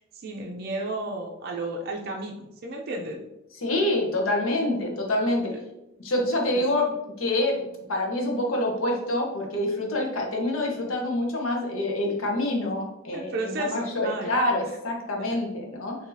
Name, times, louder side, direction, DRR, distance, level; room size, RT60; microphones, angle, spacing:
voice 1, 0.0-3.2 5.5-5.6 6.5-6.6 13.1-14.3, right 2 dB, 50° right, -1 dB, 0.4 m, -33 dB
voice 2, 3.6-5.5 6.0-6.9 7.2-7.5 7.9-16.0, left 1 dB, 90° left, 0 dB, 0.8 m, -26 dB
2.7 x 2.7 x 3.8 m, 0.88 s
head